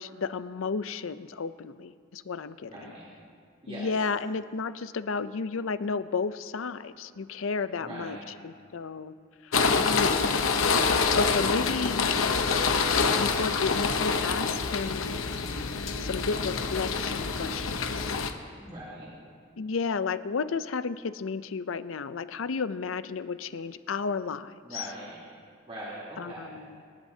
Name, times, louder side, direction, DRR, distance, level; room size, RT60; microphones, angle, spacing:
voice 1, 0.0-2.9 3.7-8.2 8.4-9.1 9.4-10.5 11.1-12.1 13.2-15.1 16.0-18.2 19.6-24.9 26.2-26.8, left 4 dB, 70° left, 13 dB, 0.5 m, -32 dB
voice 2, 2.7-3.1 3.6-3.9 7.8-8.3 18.6-19.1 24.6-25.3 25.7-26.6, right 1 dB, 30° right, -8 dB, 3.4 m, -41 dB
sound 1, 9.5-18.3, left 5 dB, 90° left, 0.9 m, -26 dB
28.0 x 11.0 x 2.8 m, 2.2 s
head